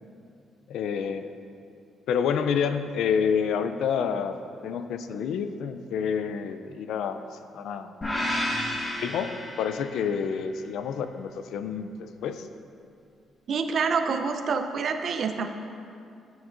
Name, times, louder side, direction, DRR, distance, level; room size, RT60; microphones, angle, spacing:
voice 1, 0.7-1.3 2.1-4.4 4.6-7.2 7.5-7.9 8.3-8.4 8.8-12.5, left 7 dB, 80° left, 10 dB, 0.4 m, -28 dB
sound 1, 8.0-10.2, left 1 dB, 25° left, 1.5 m, -31 dB
voice 2, 13.5-15.5, right 5 dB, 55° right, 7 dB, 0.6 m, -27 dB
14.0 x 6.2 x 2.5 m, 2.5 s
cardioid pair, 90°, 0 cm